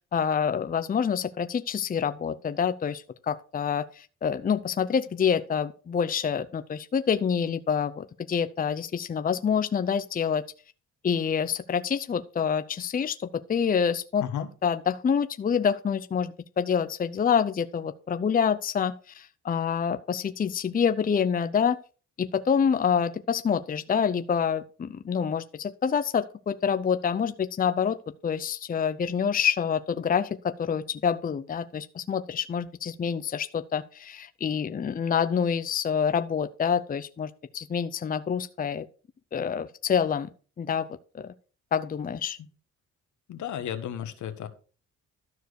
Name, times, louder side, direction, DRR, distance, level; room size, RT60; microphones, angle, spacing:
voice 1, 0.1-10.4 11.0-14.2 14.6-21.8 22.2-28.0 28.2-38.9 39.3-40.3 40.6-40.9 41.1-41.3 41.7-42.4, left 7 dB, 30° left, 12 dB, 0.6 m, -27 dB
voice 2, 14.2-14.5 43.3-44.5, left 9 dB, 75° left, 10 dB, 1.4 m, -33 dB
12.5 x 4.6 x 6.4 m, 0.38 s
cardioid pair, 90°, 30 cm